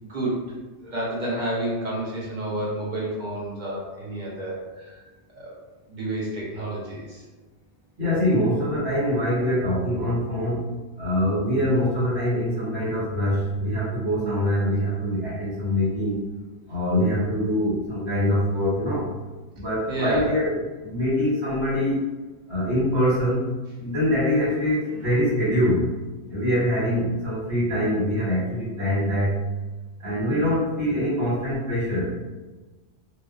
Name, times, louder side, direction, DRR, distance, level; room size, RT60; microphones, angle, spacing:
voice 1, 0.8-5.0 5.3-5.5 5.9-7.2 19.9-20.3, right 1 dB, 50° right, -6 dB, 0.9 m, -30 dB
voice 2, 8.0-10.6 11.0-16.2 16.7-19.1 19.6-20.5 20.8-22.0 22.5-23.5 23.8-25.9 26.2-29.4 30.0-32.1, equal, 80° right, -9 dB, 1.5 m, -24 dB
2.7 x 2.0 x 2.3 m, 1.2 s
omnidirectional pair, 1.1 m